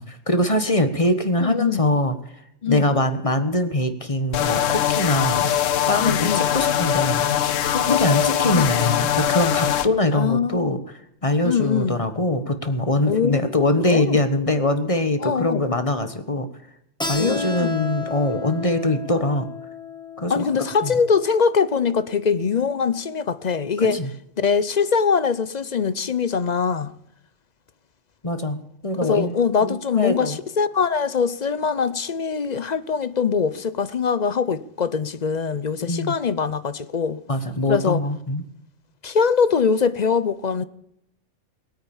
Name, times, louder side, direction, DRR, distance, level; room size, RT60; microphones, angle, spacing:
voice 1, 0.0-2.2 2.7-5.5 5.9-7.3 7.9-10.8 11.2-16.5 17.1-19.5 20.2-20.9 23.8-24.1 28.2-29.3 29.6-30.4 35.8-36.2 37.3-38.4, left 1 dB, 30° left, 1.3 m, -23 dB
voice 2, 1.4-1.9 2.6-2.9 6.0-6.5 7.9-8.7 10.1-10.7 11.4-12.0 13.1-14.2 15.2-15.6 17.2-17.8 20.3-24.0 24.4-26.9 29.0-37.2 37.7-38.0 39.0-40.6, left 6 dB, 45° left, 0.7 m, -23 dB
sound 1, 4.3-9.9, left 10 dB, 85° left, 1.1 m, -22 dB
Keyboard (musical), 17.0-22.3, left 4 dB, 5° left, 1.6 m, -34 dB
20.0 x 9.0 x 7.2 m
omnidirectional pair, 1.3 m